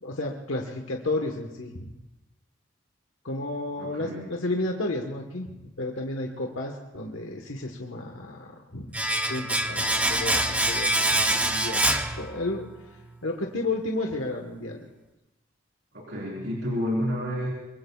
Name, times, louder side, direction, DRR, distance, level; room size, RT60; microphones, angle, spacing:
voice 1, 0.0-1.9 3.2-9.0 9.3-11.8 12.1-12.6 13.2-14.8, left 2 dB, 80° left, 1 dB, 1.3 m, -32 dB
voice 2, 3.8-4.3 15.9-17.5, equal, 60° right, -4 dB, 4.0 m, -30 dB
Domestic sounds home sounds, 8.9-12.8 13.0-13.2, right 1 dB, 5° right, 0.6 m, -25 dB
24.5 x 22.5 x 2.4 m, 1.0 s
head